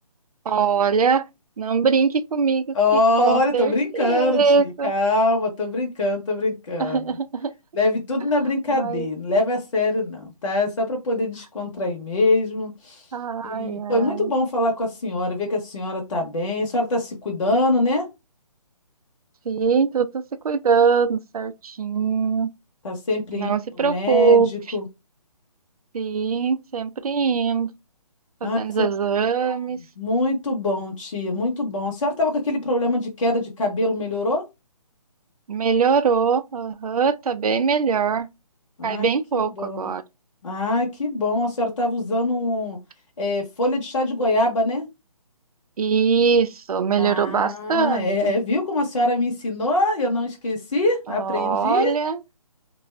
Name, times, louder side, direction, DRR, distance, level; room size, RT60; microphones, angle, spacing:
voice 1, 0.5-1.3 1.6-4.9 6.8-7.5 8.7-9.1 13.1-14.3 19.5-22.5 23.3-24.8 25.9-27.7 28.4-29.8 35.5-38.3 38.8-40.0 45.8-48.3 51.1-52.2, right 6 dB, 70° right, 0.4 m, -22 dB
voice 2, 2.7-7.0 7.7-13.0 13.4-18.1 22.8-23.5 23.8-24.8 28.4-28.9 29.5-29.6 30.0-34.4 38.8-39.0 39.6-39.9 40.4-42.8 43.2-44.9 47.0-51.9, left 2 dB, 55° left, 0.8 m, -23 dB
2.5 x 2.2 x 3.1 m
hypercardioid pair, 175°, 19 cm